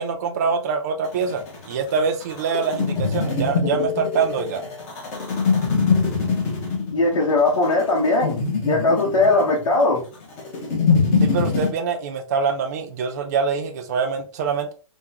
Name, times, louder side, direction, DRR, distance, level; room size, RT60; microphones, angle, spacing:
voice 1, 0.0-4.6 11.2-14.7, right 5 dB, 30° right, 0.5 m, -24 dB
sound 1, 1.0-11.7, left 5 dB, 30° left, 0.8 m, -23 dB
voice 2, 6.9-10.0, left 2 dB, 70° left, 1.0 m, -19 dB
3.6 x 2.2 x 2.8 m
hypercardioid pair, 170°, 17 cm